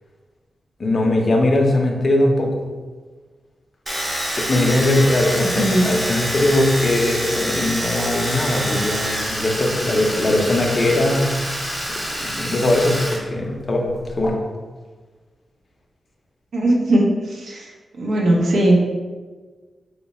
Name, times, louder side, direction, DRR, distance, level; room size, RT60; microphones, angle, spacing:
voice 1, 0.8-2.6 4.4-11.4 12.2-13.0 13.3-13.9 14.2-14.4, left 1 dB, 35° left, 1 dB, 0.5 m, -20 dB
Domestic sounds home sounds, 3.9-13.2 13.4-14.3, equal, 10° right, 0.7 m, -26 dB
voice 2, 5.3-6.0 16.5-17.1 17.5-17.6 18.0-18.8, right 1 dB, 80° right, -1 dB, 0.6 m, -18 dB
3.0 x 2.1 x 4.1 m, 1.4 s
wide cardioid pair, 150°, 0 cm